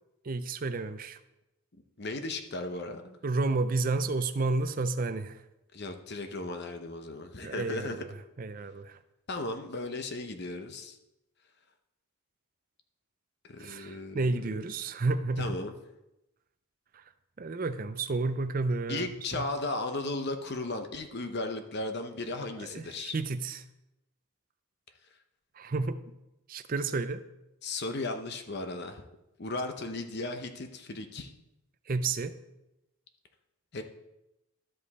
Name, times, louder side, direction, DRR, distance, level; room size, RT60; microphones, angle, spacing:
voice 1, 0.2-1.2 3.2-5.4 7.4-8.1 8.4-9.0 13.6-15.5 17.4-19.1 19.3-19.4 22.6-23.6 25.6-26.0 26.5-27.2 31.9-32.3, right 3 dB, 40° right, 11 dB, 0.4 m, -31 dB
voice 2, 2.0-3.2 5.7-8.1 9.3-11.0 13.5-14.6 15.4-15.8 18.9-23.1 27.6-29.0 29.4-31.3 33.7-33.8, left 2 dB, 50° left, 6 dB, 0.8 m, -36 dB
13.0 x 5.2 x 4.1 m, 0.92 s
head